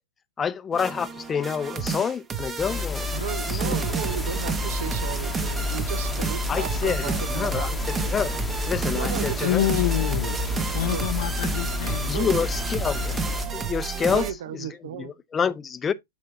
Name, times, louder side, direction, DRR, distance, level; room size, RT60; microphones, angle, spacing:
voice 1, 0.4-3.1 3.5-3.8 6.5-8.3 8.7-9.6 12.1-13.1 13.5-14.3 15.0-15.9, left 7 dB, 20° left, 0.6 m, -27 dB
sound 1, 0.7-14.3, right 5 dB, 20° right, 0.9 m, -31 dB
sound 2, 2.6-13.5, left 5 dB, 5° left, 1.1 m, -30 dB
voice 2, 3.1-7.8 8.9-9.7 10.8-11.1 12.1-12.3 14.1-15.1, right 11 dB, 65° right, 0.7 m, -34 dB
sound 3, 4.1-13.8, right 4 dB, 85° right, 1.8 m, -43 dB
voice 3, 9.4-10.4 10.7-12.1, left 14 dB, 65° left, 0.5 m, -27 dB
7.5 x 5.9 x 2.6 m
hypercardioid pair, 115°, 0 cm